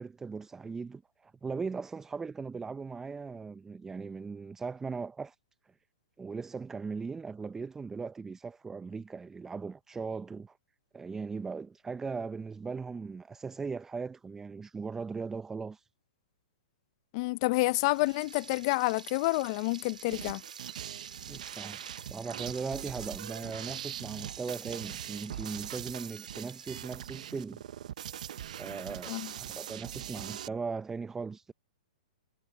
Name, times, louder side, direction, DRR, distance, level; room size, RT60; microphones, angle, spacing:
voice 1, 0.0-5.4 6.2-10.6 10.9-15.9 21.3-27.6 28.6-31.5, right 5 dB, 10° right, 0.6 m, -39 dB
voice 2, 17.1-20.4 29.1-29.3, left 24 dB, 45° left, 0.7 m, -29 dB
Frying (food), 17.7-26.8, right 6 dB, 85° right, 4.2 m, -49 dB
sound 1, 20.1-30.5, right 10 dB, 70° right, 0.9 m, -42 dB
hypercardioid pair, 125°, 4 cm